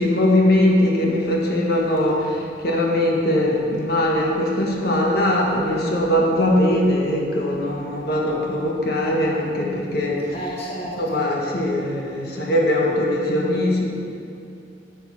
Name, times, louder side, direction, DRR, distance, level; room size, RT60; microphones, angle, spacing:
voice 1, 0.0-10.5 11.0-13.8, left 1 dB, 60° left, -1 dB, 1.4 m, -21 dB
voice 2, 5.4-6.0 10.3-11.3, right 1 dB, 35° left, -4 dB, 1.1 m, -32 dB
11.5 x 7.1 x 4.2 m, 2.6 s
head